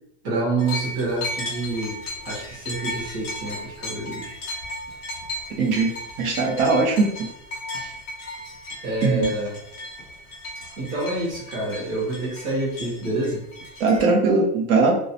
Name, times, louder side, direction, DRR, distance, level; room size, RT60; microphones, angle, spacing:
voice 1, 0.2-2.0 2.3-4.3 8.8-9.5 10.8-13.4, right 2 dB, 45° right, -7 dB, 0.9 m, -27 dB
sound 1, 0.6-14.0, left 1 dB, 20° left, 0.4 m, -35 dB
voice 2, 5.6-5.9 6.2-7.3 7.7-7.9 9.0-9.3 13.8-15.0, right 3 dB, 70° right, 1 dB, 0.9 m, -20 dB
2.3 x 2.0 x 2.7 m, 0.77 s
supercardioid pair, 170°, 44 cm